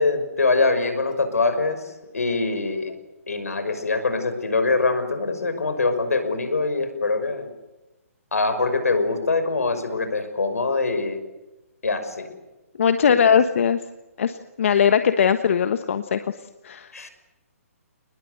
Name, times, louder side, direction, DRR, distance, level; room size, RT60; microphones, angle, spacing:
voice 1, 0.0-1.8 2.1-2.9 3.3-7.5 8.3-11.2 11.8-12.3 13.1-13.2 16.9-17.1, left 3 dB, 85° left, 9 dB, 5.8 m, -23 dB
voice 2, 12.8-13.8 14.2-16.2 16.6-17.1, left 7 dB, 60° left, 9 dB, 1.3 m, -20 dB
30.0 x 20.5 x 8.0 m, 1.0 s
hypercardioid pair, 145°, 8 cm